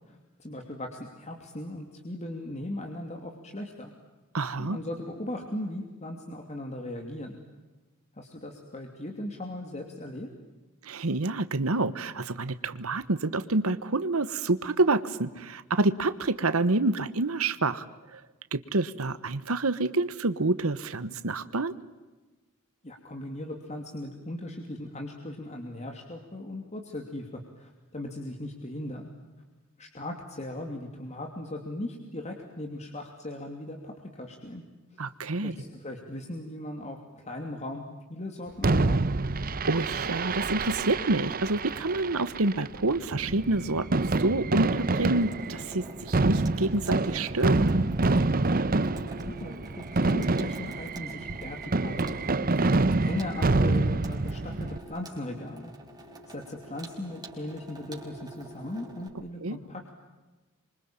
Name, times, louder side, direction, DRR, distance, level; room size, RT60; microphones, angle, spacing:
voice 1, 0.0-3.9 4.6-7.4 8.1-10.3 22.8-29.1 29.8-34.6 34.9-35.0 35.4-37.8 38.1-39.0 49.1-52.5 53.0-55.7 56.3-59.9, left 1 dB, 35° left, 3 dB, 2.8 m, -38 dB
voice 2, 4.3-4.8 10.8-17.9 18.1-18.2 18.5-21.7 35.0-35.5 39.7-47.8 59.4-59.6, right 2 dB, 90° right, 13 dB, 1.2 m, -28 dB
Fireworks, 38.6-54.8, right 2 dB, 45° right, 0.9 m, -27 dB
Water tap faucet / Sink (filling or washing), 44.9-59.1, right 1 dB, 20° right, 4.7 m, -47 dB
27.0 x 24.5 x 8.9 m, 1.2 s
head